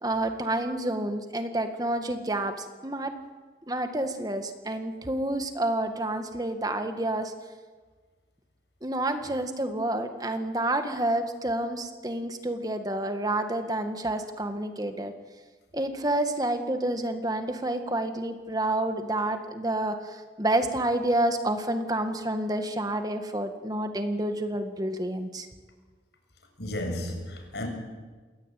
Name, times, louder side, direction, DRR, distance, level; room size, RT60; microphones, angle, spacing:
voice 1, 0.0-3.2 3.7-7.3 8.8-15.1 15.7-25.5, right 1 dB, 20° right, 1.9 m, -29 dB
voice 2, 26.6-27.7, left 1 dB, 75° left, 7.3 m, -33 dB
28.5 x 22.0 x 9.3 m
head